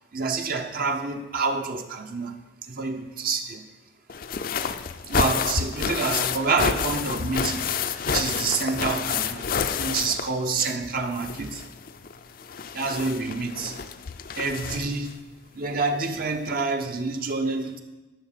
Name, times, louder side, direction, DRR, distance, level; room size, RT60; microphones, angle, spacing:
voice 1, 0.1-3.6 5.1-9.5 9.8-11.6 12.7-13.8 14.3-15.1 15.5-17.8, right 4 dB, 50° right, 4 dB, 0.7 m, -28 dB
sound 1, 4.1-10.9 11.1-15.1 16.2-16.3 16.6-16.7, left 6 dB, 50° left, 0.5 m, -29 dB
11.0 x 6.6 x 5.7 m, 1.1 s
head